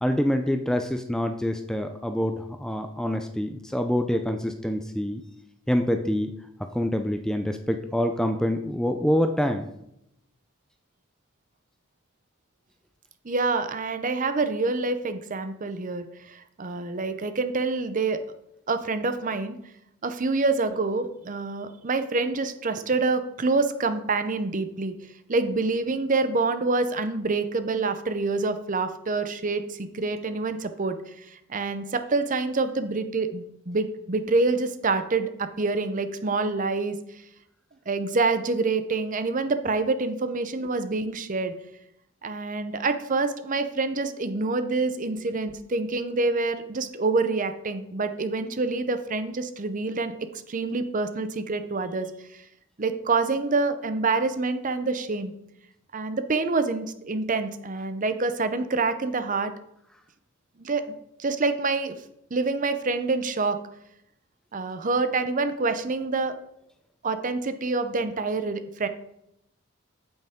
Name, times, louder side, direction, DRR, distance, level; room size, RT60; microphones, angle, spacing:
voice 1, 0.0-5.2 5.7-6.3 6.7-9.7, equal, 5° left, 6 dB, 0.4 m, -26 dB
voice 2, 13.2-18.2 18.7-19.6 20.0-24.9 25.3-37.0 37.9-41.5 42.2-52.1 52.3-52.4 52.8-55.3 55.9-59.5 60.6-60.8 61.2-62.0 62.3-63.6 64.5-66.4 67.0-68.9, right 3 dB, 40° right, 10 dB, 0.6 m, -26 dB
9.0 x 8.0 x 3.6 m, 0.79 s
head